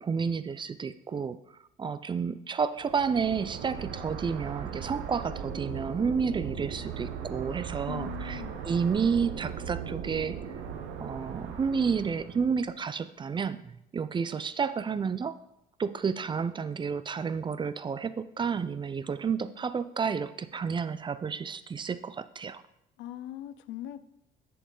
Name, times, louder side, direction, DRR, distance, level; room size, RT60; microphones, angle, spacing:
voice 1, 0.0-1.4 1.8-10.4 11.0-15.4 15.8-22.6, right 6 dB, 25° right, 14 dB, 0.4 m, -31 dB
sound 1, 2.8-12.6, right 7 dB, 85° right, 0.9 m, -38 dB
voice 2, 7.9-8.7 23.0-24.0, left 13 dB, 85° left, 14 dB, 0.5 m, -40 dB
7.4 x 6.8 x 3.8 m, 0.80 s
cardioid pair, 95°, 19 cm